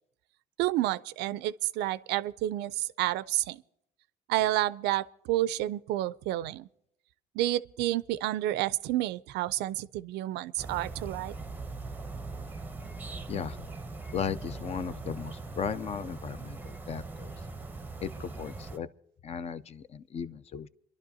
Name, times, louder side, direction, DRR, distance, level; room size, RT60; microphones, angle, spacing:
voice 1, 0.6-3.6 4.3-6.7 7.3-11.3, right 15 dB, 85° right, 0.4 m, -30 dB
sound 1, 10.6-18.8, right 3 dB, 10° right, 0.7 m, -41 dB
voice 2, 14.1-17.3 18.0-18.9 19.2-20.7, left 7 dB, 40° left, 0.5 m, -36 dB
28.5 x 11.5 x 2.7 m
cardioid pair, 110°, 17 cm